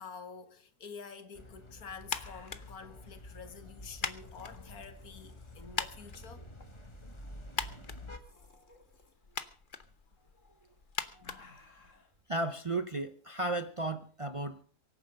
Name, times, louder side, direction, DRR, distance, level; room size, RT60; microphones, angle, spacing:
voice 1, 0.0-6.4 8.4-8.7 11.2-11.6, left 5 dB, 80° left, 2.1 m, -48 dB
sound 1, 1.2-1.3 1.7-1.8 2.0-2.9 3.9-5.7 6.6-6.9 7.2-7.3 7.9-9.1 10.6-12.1 13.3-13.5, left 3 dB, 55° left, 2.7 m, -59 dB
sound 2, 1.3-8.2, left 1 dB, 20° left, 1.6 m, -49 dB
sound 3, 2.0-12.2, left 5 dB, 40° left, 1.1 m, -43 dB
voice 2, 12.3-14.6, right 2 dB, 30° right, 0.6 m, -34 dB
24.0 x 9.5 x 5.2 m
omnidirectional pair, 1.5 m